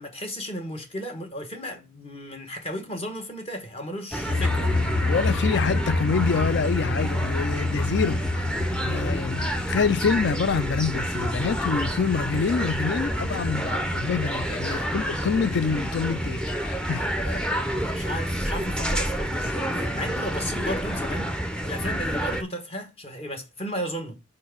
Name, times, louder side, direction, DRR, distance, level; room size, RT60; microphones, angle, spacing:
voice 1, 0.0-4.8 9.3-9.5 14.6-15.0 17.2-17.5 17.9-21.4 21.6-24.2, equal, 30° left, 1.2 m, -34 dB
sound 1, 4.1-22.4, equal, 5° left, 0.6 m, -29 dB
sound 2, 4.3-19.8, left 2 dB, 90° left, 0.8 m, -30 dB
voice 2, 5.0-8.5 8.8-17.1, left 5 dB, 55° left, 0.4 m, -26 dB
4.8 x 4.5 x 5.8 m
head